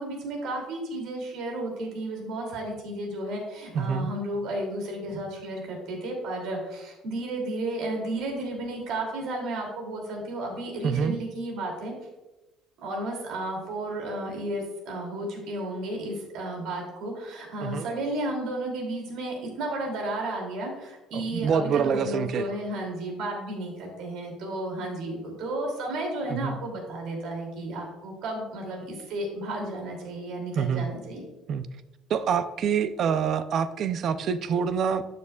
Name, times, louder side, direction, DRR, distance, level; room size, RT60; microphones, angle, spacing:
voice 1, 0.0-11.9 12.8-31.2, right 1 dB, 65° right, 1 dB, 2.7 m, -33 dB
voice 2, 3.7-4.1 10.8-11.2 17.6-17.9 21.1-22.5 26.3-26.6 30.6-30.9 31.5-31.6 32.1-35.1, right 7 dB, 45° right, 12 dB, 0.5 m, -26 dB
12.0 x 6.7 x 2.3 m, 1.0 s
cardioid pair, 160°, 0 cm